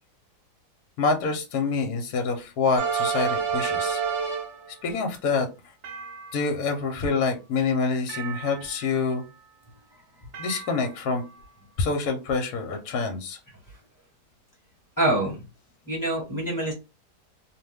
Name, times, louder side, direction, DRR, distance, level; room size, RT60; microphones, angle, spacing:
voice 1, 1.0-4.0 4.8-5.5 6.3-9.2 10.4-11.2 11.8-13.4, left 4 dB, 70° left, 4 dB, 1.0 m, -26 dB
sound 1, 2.8-4.7 5.8-6.7 8.1-9.0 10.3-11.2, right 6 dB, 60° right, 0.8 m, -30 dB
voice 2, 15.0-15.4 15.9-16.7, right 1 dB, 10° left, -3 dB, 1.1 m, -25 dB
2.7 x 2.1 x 3.3 m, 0.28 s
omnidirectional pair, 1.8 m